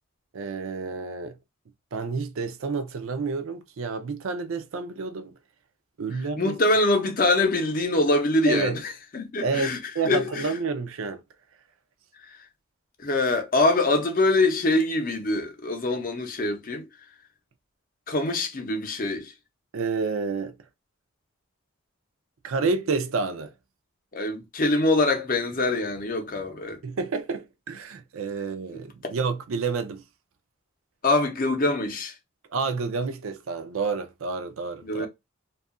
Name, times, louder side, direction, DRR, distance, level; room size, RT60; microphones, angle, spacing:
voice 1, 0.3-1.4 1.9-5.4 6.0-6.5 8.5-8.8 9.4-11.2 19.7-20.5 22.4-23.5 26.8-30.0 32.5-35.1, right 4 dB, 80° right, 0.5 m, -29 dB
voice 2, 6.4-9.8 10.0-10.5 12.3-12.4 13.0-16.8 18.1-19.3 24.1-26.8 29.0-29.1 31.0-32.1 34.8-35.1, left 2 dB, 40° left, 0.6 m, -24 dB
2.7 x 2.3 x 2.4 m
head